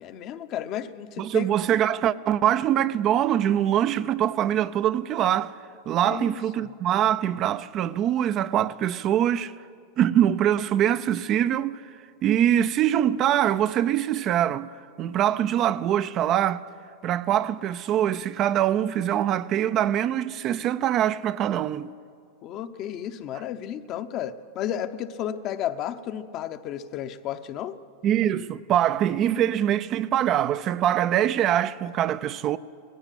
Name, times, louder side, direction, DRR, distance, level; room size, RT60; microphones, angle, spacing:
voice 1, 0.0-1.5 6.0-6.7 22.4-27.8, left 10 dB, 40° left, 0.8 m, -33 dB
voice 2, 1.2-5.5 5.9-9.5 10.0-11.8 12.2-14.7 15.0-16.6 17.0-21.9 28.0-32.6, right 11 dB, 40° right, 0.5 m, -23 dB
17.5 x 15.5 x 10.0 m
supercardioid pair, 130°, 0 cm